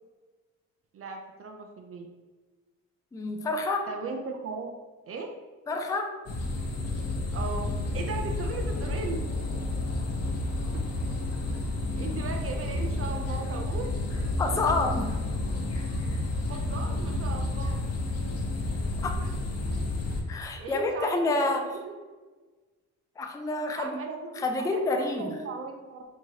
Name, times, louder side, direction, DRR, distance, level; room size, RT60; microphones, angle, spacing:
voice 1, 0.9-2.1 3.9-4.7 5.0-5.3 7.3-9.2 10.7-10.8 12.0-13.9 16.5-17.8 19.2-19.3 19.7-19.8 20.5-21.1 21.5-21.9 23.7-24.4 24.7-26.1, right 4 dB, 50° right, 3 dB, 0.5 m, -37 dB
voice 2, 3.1-3.9 5.7-6.1 14.4-15.2 19.0-19.2 20.3-21.6 23.2-24.0 24.4-25.4, left 2 dB, 10° left, 4 dB, 0.4 m, -28 dB
sound 1, 6.3-20.2, left 2 dB, 55° left, 0.8 m, -30 dB
4.5 x 2.8 x 2.8 m, 1.3 s
cardioid pair, 90°, 30 cm